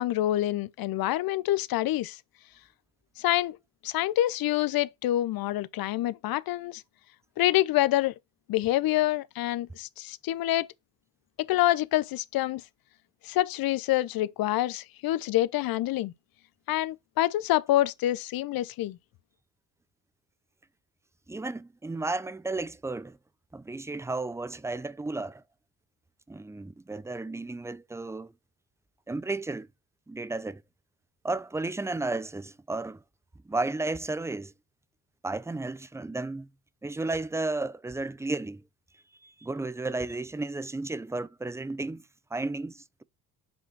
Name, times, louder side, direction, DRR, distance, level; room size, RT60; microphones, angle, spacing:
voice 1, 0.0-2.2 3.2-3.6 3.8-6.8 7.4-8.1 8.5-10.7 11.5-12.6 13.2-16.1 16.7-19.0, left 14 dB, 50° left, 0.7 m, -26 dB
voice 2, 21.3-23.2 23.5-25.4 26.3-28.3 29.1-29.7 30.1-30.6 31.2-33.0 33.4-34.5 35.2-36.5 36.8-38.6 39.2-42.0 42.3-43.0, right 2 dB, 5° right, 0.6 m, -33 dB
6.0 x 4.9 x 6.1 m
hypercardioid pair, 55°, 47 cm